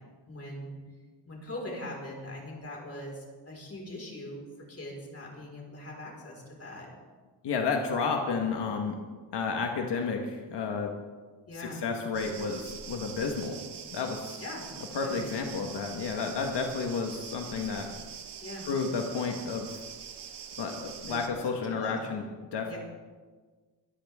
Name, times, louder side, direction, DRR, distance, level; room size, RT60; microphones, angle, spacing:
voice 1, 0.3-0.8 1.2-4.4 4.7-6.9 11.5-11.8 14.4-14.6 15.0-15.1 18.4-18.7 21.1-22.0 22.7-22.8, left 1 dB, 35° left, -1 dB, 5.0 m, -41 dB
voice 2, 7.4-9.0 9.3-10.9 11.5-13.6 13.9-14.4 14.9-17.9 18.6-19.8 20.6-22.8, left 5 dB, 90° left, 2 dB, 1.6 m, -31 dB
sound 1, 12.1-21.3, right 8 dB, 90° right, 1.4 m, -44 dB
22.5 x 13.5 x 3.7 m, 1.4 s
wide cardioid pair, 130°, 40 cm